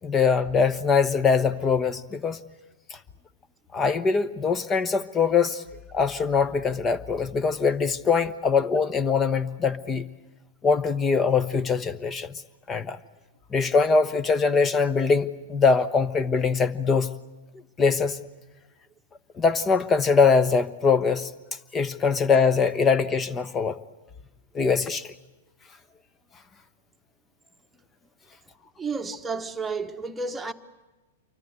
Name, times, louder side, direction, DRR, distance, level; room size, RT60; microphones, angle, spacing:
voice 1, 0.0-2.4 3.7-5.6 5.9-10.1 10.6-12.4 12.7-13.0 13.5-17.1 17.8-18.2 19.4-21.3 21.7-23.8 24.5-25.1, left 5 dB, 20° left, 1.1 m, -22 dB
voice 2, 28.8-30.5, right 4 dB, 10° right, 1.3 m, -31 dB
28.0 x 24.5 x 8.1 m
figure-of-eight pair, 105°, 0 cm